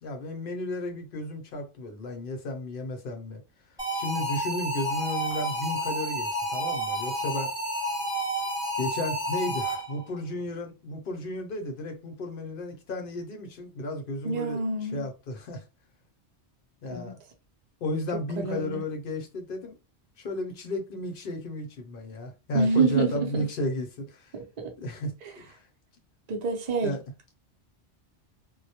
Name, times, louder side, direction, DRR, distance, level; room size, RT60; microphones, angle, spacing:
voice 1, 0.0-3.4 4.0-7.5 8.8-15.6 16.8-17.2 17.8-19.8 20.2-24.3 24.8-25.1 25.5-25.6 26.8-27.0, left 1 dB, 55° left, 0.7 m, -33 dB
sound 1, 3.8-10.1, equal, 5° right, 0.9 m, -30 dB
voice 2, 14.2-15.1 16.9-17.1 18.1-18.8 22.5-23.4 24.3-24.7 26.3-26.9, right 4 dB, 45° right, 0.6 m, -27 dB
2.2 x 2.0 x 2.8 m
omnidirectional pair, 1.2 m